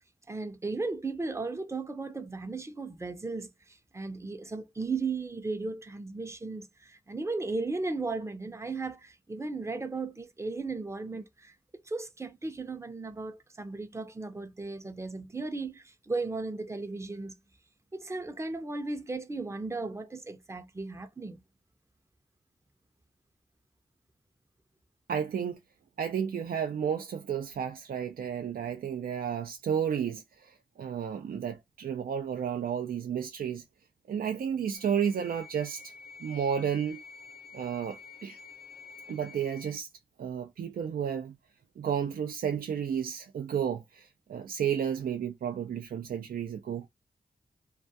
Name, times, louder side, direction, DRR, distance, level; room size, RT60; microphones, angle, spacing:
voice 1, 0.3-11.5 11.9-17.4 17.9-21.4, right 3 dB, 20° right, 0.5 m, -36 dB
voice 2, 25.1-25.6 26.0-33.6 34.1-35.9 36.2-37.0 37.5-38.4 39.1-39.9 40.2-41.4 41.8-46.9, right 8 dB, 75° right, 0.4 m, -32 dB
sound 1, 34.7-39.8, left 5 dB, 85° left, 0.7 m, -49 dB
2.3 x 2.2 x 2.6 m
cardioid pair, 45°, 15 cm